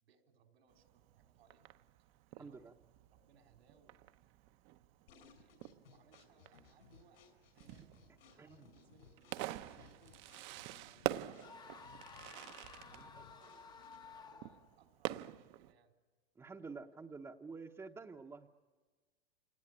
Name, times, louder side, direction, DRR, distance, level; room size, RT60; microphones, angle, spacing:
voice 1, 0.0-1.7 2.3-2.8 3.1-4.0 5.1-7.2 7.5-7.9 8.2-12.5 12.9-16.0, right 6 dB, 85° right, 5 dB, 4.0 m, -69 dB
Fireworks, 0.7-15.7, right 15 dB, 40° right, 0.8 m, -47 dB
voice 2, 2.4-2.7 8.4-8.7 13.0-13.2 16.4-18.5, right 4 dB, 10° right, 2 dB, 0.9 m, -49 dB
sound 1, 5.1-14.2, left 6 dB, 75° left, 5.3 m, -64 dB
sound 2, 11.4-14.7, left 5 dB, 15° left, 0.8 m, -55 dB
27.5 x 19.5 x 10.0 m, 1.4 s
hypercardioid pair, 135°, 30 cm